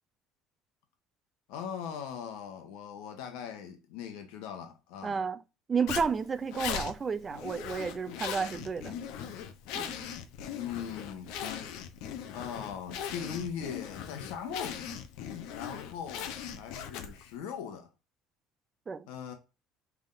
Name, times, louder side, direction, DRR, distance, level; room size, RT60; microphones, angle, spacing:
voice 1, 1.5-5.2 10.4-11.7 12.3-14.9 15.5-17.9 19.1-19.3, left 8 dB, 90° left, 1.0 m, -40 dB
voice 2, 5.0-5.4 5.7-8.9 9.7-10.0 18.9-19.1, right 5 dB, 20° right, 0.3 m, -31 dB
Zipper (clothing), 5.9-17.3, left 8 dB, 70° left, 0.7 m, -39 dB
5.6 x 3.5 x 2.6 m
cardioid pair, 170°, 0 cm